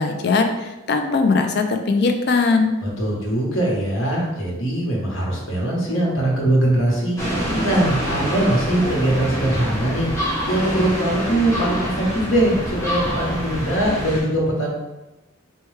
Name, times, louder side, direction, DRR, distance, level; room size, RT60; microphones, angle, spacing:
voice 1, 0.0-2.8, left 4 dB, 50° left, 5 dB, 0.4 m, -20 dB
voice 2, 2.8-7.2 7.6-10.1 10.4-14.7, right 1 dB, 75° left, -3 dB, 1.1 m, -21 dB
sound 1, 7.2-14.2, equal, 15° left, 0.9 m, -26 dB
4.3 x 2.2 x 3.2 m, 1.0 s
head